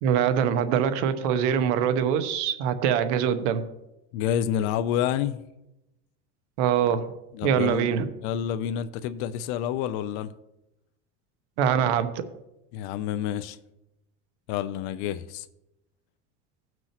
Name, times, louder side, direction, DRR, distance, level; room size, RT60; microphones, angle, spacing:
voice 1, 0.0-3.6 6.6-7.1 7.4-8.1 11.6-12.1, right 8 dB, 80° right, 1.0 m, -23 dB
voice 2, 4.1-5.4 7.3-7.9 8.2-10.3 12.7-13.6 14.5-15.5, left 10 dB, 70° left, 0.6 m, -28 dB
16.5 x 6.1 x 3.0 m
supercardioid pair, 130°, 34 cm